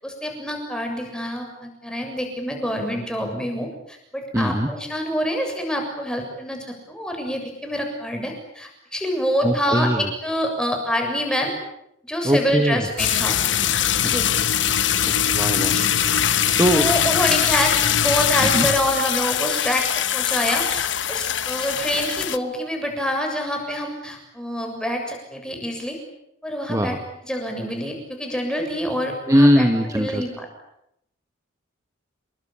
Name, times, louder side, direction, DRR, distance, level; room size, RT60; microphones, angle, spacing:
voice 1, 0.0-11.5 12.1-13.4 14.0-14.2 15.7-15.9 16.7-26.0 26.4-27.0 27.2-30.5, equal, 5° left, 3 dB, 7.1 m, -26 dB
voice 2, 4.3-4.7 9.4-10.1 12.2-12.9 15.3-15.8 16.6-16.9 18.4-18.7 26.7-27.0 29.3-30.2, equal, 15° right, 7 dB, 1.5 m, -20 dB
sound 1, 13.0-22.4, left 9 dB, 65° left, 1.2 m, -22 dB
28.5 x 23.0 x 8.7 m, 0.78 s
head